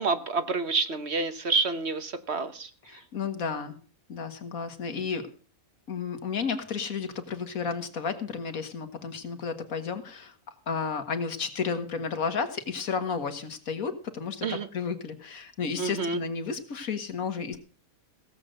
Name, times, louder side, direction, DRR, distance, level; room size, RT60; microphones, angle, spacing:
voice 1, 0.0-2.7 14.4-14.7 15.8-16.2, right 4 dB, 50° right, 11 dB, 1.3 m, -28 dB
voice 2, 2.9-3.7 4.1-5.3 5.9-17.6, left 5 dB, 75° left, 8 dB, 2.0 m, -32 dB
17.0 x 7.8 x 6.5 m, 0.40 s
omnidirectional pair, 1.5 m